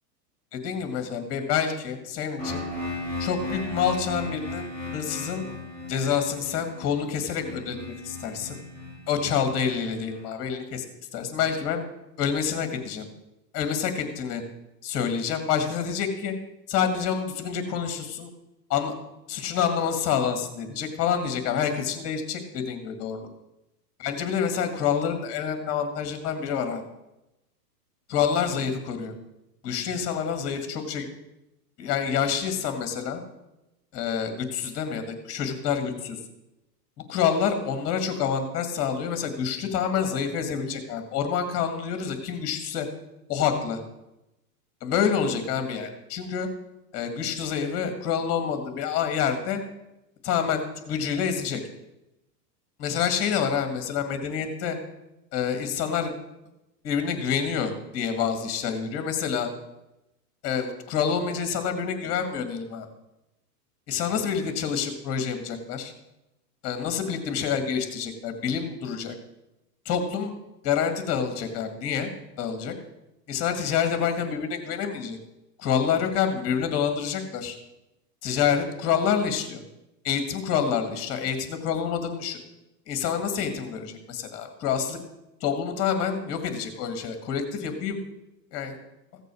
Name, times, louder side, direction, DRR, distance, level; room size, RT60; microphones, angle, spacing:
voice 1, 0.5-2.6 3.2-5.4 5.9-7.8 8.0-8.6 9.1-10.8 11.1-11.8 12.2-13.1 13.5-14.4 14.8-16.3 16.7-18.3 18.7-18.9 19.3-23.3 24.0-26.8 28.1-29.1 29.6-31.1 31.8-33.2 33.9-36.2 37.1-42.9 43.3-43.8 44.8-46.5 46.9-49.6 50.2-51.6 52.8-54.8 55.3-56.1 56.8-59.5 60.4-62.9 63.9-65.9 66.6-69.1 69.9-70.3 70.6-72.1 72.4-72.7 73.3-75.2 75.6-77.6 78.2-79.6 80.0-82.4 82.9-85.0 85.4-88.0 88.5-88.8, left 7 dB, 30° left, 7 dB, 2.1 m, -27 dB
sound 1, 2.4-10.2, left 2 dB, 20° right, 3.4 m, -36 dB
15.5 x 6.7 x 6.3 m, 0.94 s
supercardioid pair, 150°, 47 cm